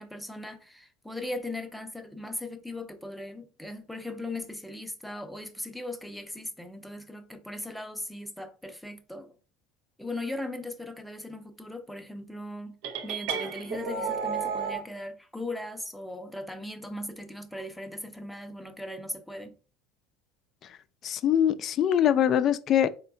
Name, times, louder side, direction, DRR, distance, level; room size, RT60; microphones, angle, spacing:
voice 1, 0.0-9.3 10.0-19.6, left 1 dB, ahead, 0.6 m, -38 dB
sound 1, 12.8-14.8, right 5 dB, 65° right, 0.5 m, -32 dB
voice 2, 21.0-23.0, left 10 dB, 45° left, 0.3 m, -23 dB
4.2 x 2.2 x 2.6 m
hypercardioid pair, 75°, 0 cm